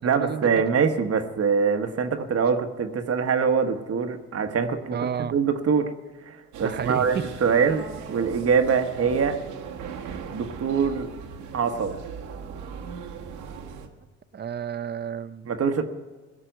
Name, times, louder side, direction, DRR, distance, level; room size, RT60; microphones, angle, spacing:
voice 1, 0.0-5.9 6.2-9.4 10.3-11.1 11.5-11.9 15.5-15.8, right 6 dB, 50° right, 7 dB, 1.3 m, -24 dB
voice 2, 4.9-5.4 6.6-7.1 14.3-15.5, right 8 dB, 35° right, 15 dB, 0.6 m, -31 dB
sound 1, 6.5-13.9, right 6 dB, 85° right, 1.5 m, -38 dB
17.0 x 6.7 x 9.1 m, 1.3 s
cardioid pair, 90°, 30 cm